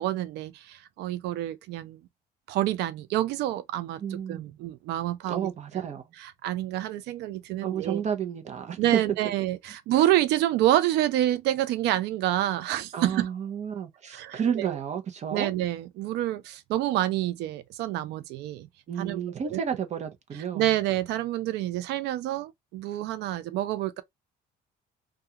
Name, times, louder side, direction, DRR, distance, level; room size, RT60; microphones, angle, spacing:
voice 1, 0.0-2.0 2.5-5.8 6.2-8.0 8.8-13.3 14.1-14.8 15.3-18.7 19.0-19.2 19.5-19.6 20.3-24.0, right 14 dB, 85° right, 0.5 m, -28 dB
voice 2, 4.0-4.5 5.3-6.0 7.6-9.0 12.9-15.5 18.9-20.6, right 7 dB, 40° right, 0.6 m, -31 dB
2.4 x 2.3 x 2.8 m
cardioid pair, 110°, 17 cm